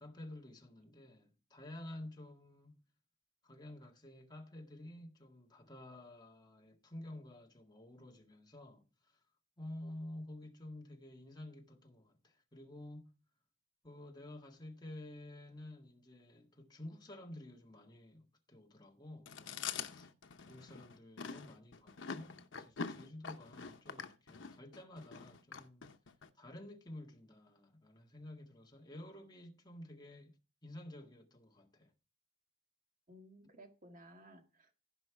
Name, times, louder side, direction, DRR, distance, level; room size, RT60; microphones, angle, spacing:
voice 1, 0.0-2.8 3.4-8.9 9.6-13.2 13.8-20.1 20.4-25.9 26.4-31.9, left 1 dB, 25° left, 1.7 m, -51 dB
Chewing mastication, 19.3-26.3, left 6 dB, 90° left, 0.9 m, -45 dB
voice 2, 33.1-34.7, equal, 45° right, 1.8 m, -57 dB
15.0 x 5.5 x 4.6 m
head